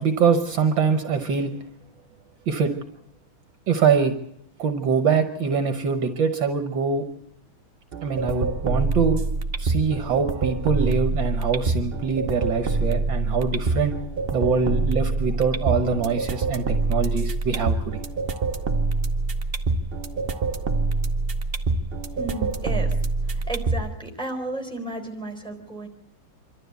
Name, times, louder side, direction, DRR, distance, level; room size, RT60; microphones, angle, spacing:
voice 1, 0.0-1.5 2.5-2.7 3.7-4.1 4.6-7.0 8.0-9.2 9.6-13.9 14.3-18.0, right 5 dB, 65° right, 7 dB, 1.7 m, -23 dB
sound 1, 7.9-23.9, right 3 dB, 40° right, 0.9 m, -26 dB
voice 2, 22.1-22.9 23.2-25.9, right 2 dB, ahead, 4 dB, 4.0 m, -33 dB
26.0 x 12.5 x 8.2 m, 0.75 s
omnidirectional pair, 2.4 m